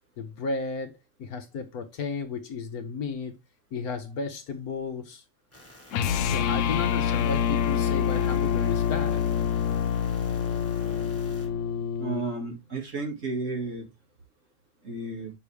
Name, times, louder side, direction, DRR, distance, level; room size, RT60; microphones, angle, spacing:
voice 1, 0.2-3.3 3.7-5.2 6.2-9.2, left 4 dB, 65° left, 1.2 m, -34 dB
sound 1, 5.5-11.5, left 1 dB, 10° left, 2.6 m, -51 dB
sound 2, 5.9-12.3, left 8 dB, 80° left, 0.6 m, -26 dB
voice 2, 12.0-13.9 14.8-15.3, right 3 dB, 45° right, 2.4 m, -32 dB
sound 3, 12.7-12.8, left 2 dB, 30° left, 0.7 m, -41 dB
6.6 x 5.9 x 3.3 m
omnidirectional pair, 1.9 m